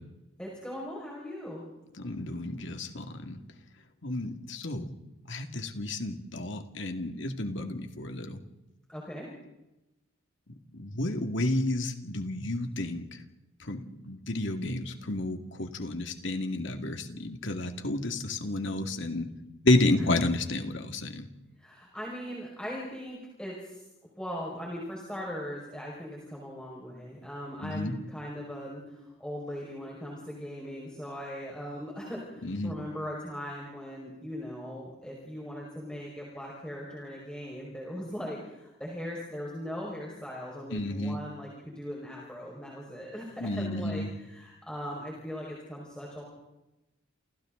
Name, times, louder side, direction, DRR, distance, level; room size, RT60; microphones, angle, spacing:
voice 1, 0.4-1.7 8.9-9.3 20.0-20.1 21.6-23.8 24.2-46.2, equal, 5° left, -4 dB, 5.5 m, -39 dB
voice 2, 2.0-3.4 4.0-4.9 5.3-8.4 10.7-13.1 13.6-19.3 19.6-21.3 27.6-27.9 32.4-32.8 40.7-41.2 43.4-44.1, left 2 dB, 60° left, 5 dB, 2.4 m, -31 dB
29.5 x 29.0 x 4.0 m, 0.96 s
head